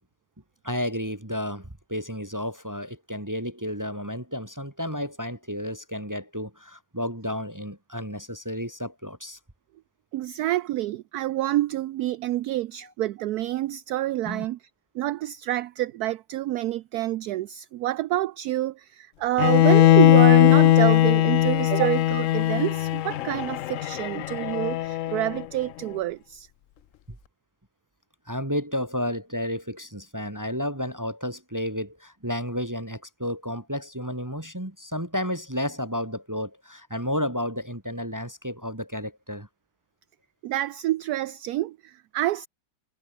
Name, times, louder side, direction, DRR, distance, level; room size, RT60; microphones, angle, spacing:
voice 1, 0.6-9.4 14.3-14.4 21.7-21.8 28.3-39.5, equal, 10° right, 1.9 m, -32 dB
voice 2, 10.1-14.6 14.9-26.5 40.4-42.5, right 15 dB, 70° right, 1.0 m, -27 dB
Bowed string instrument, 19.4-25.4, left 14 dB, 75° left, 0.7 m, -19 dB
omnidirectional pair, 1.9 m